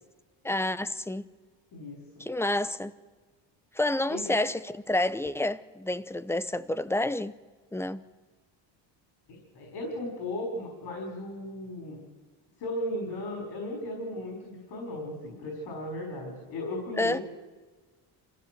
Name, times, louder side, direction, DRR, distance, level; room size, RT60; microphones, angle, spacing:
voice 1, 0.4-1.2 2.2-2.9 3.7-7.3 7.7-8.0 17.0-17.2, left 1 dB, 5° left, 0.6 m, -29 dB
voice 2, 1.7-2.3 4.1-4.4 9.3-12.0 12.6-17.2, left 1 dB, 60° left, 5.5 m, -36 dB
27.0 x 15.0 x 7.9 m
cardioid pair, 135°, 44 cm